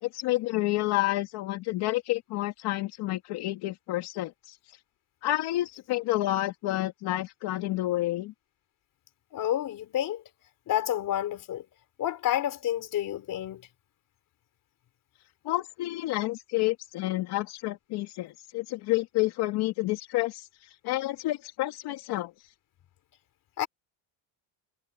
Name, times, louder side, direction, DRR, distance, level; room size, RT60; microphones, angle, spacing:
voice 1, 0.0-4.6 5.2-8.3 15.4-22.3, left 17 dB, 70° left, 2.6 m, -29 dB
voice 2, 9.3-10.2 10.7-11.6 12.0-13.6 23.6-23.7, left 12 dB, 50° left, 4.1 m, -29 dB
cardioid pair, 145°, 41 cm